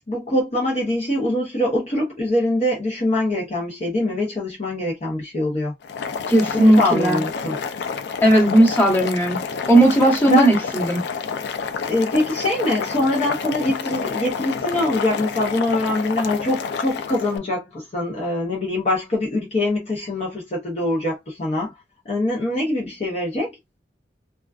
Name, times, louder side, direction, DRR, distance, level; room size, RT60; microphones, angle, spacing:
voice 1, 0.1-5.7 6.5-7.6 10.3-10.5 11.8-21.7 22.1-23.5, left 1 dB, 40° left, 0.8 m, -23 dB
Boiling, 5.8-17.4, left 5 dB, 65° left, 0.4 m, -29 dB
voice 2, 6.3-7.2 8.2-9.4 9.7-11.0, right 1 dB, 10° left, 1.0 m, -16 dB
2.3 x 2.3 x 2.3 m
head